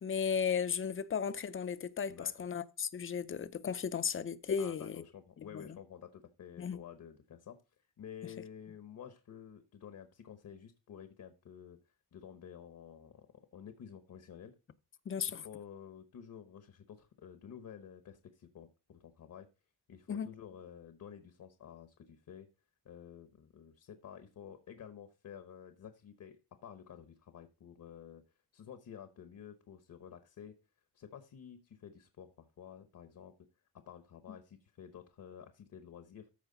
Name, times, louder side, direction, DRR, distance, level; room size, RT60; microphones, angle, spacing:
voice 1, 0.0-2.1 2.4-5.0 5.5-5.6 6.6-6.8 15.1-15.5 20.1-20.3, left 7 dB, 35° left, 0.5 m, -35 dB
voice 2, 2.1-2.5 4.6-7.6 8.0-11.8 12.1-14.6 15.4-19.5 19.9-22.5 22.8-28.2 28.5-30.6 30.9-33.3 33.7-36.3, left 8 dB, 55° left, 1.0 m, -51 dB
14.0 x 4.9 x 3.8 m
wide cardioid pair, 160°, 37 cm